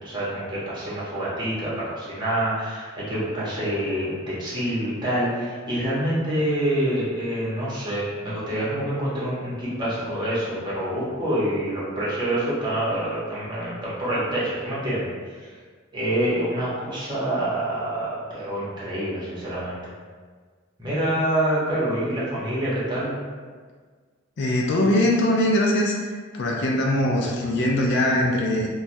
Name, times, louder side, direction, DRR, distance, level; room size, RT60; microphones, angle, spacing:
voice 1, 0.0-15.1 15.4-15.5 15.9-19.8 20.8-23.1, right 1 dB, 20° right, -9 dB, 0.9 m, -26 dB
voice 2, 24.4-26.0 26.3-28.7, left 1 dB, 55° left, -1 dB, 0.4 m, -21 dB
3.0 x 2.3 x 2.6 m, 1.5 s
head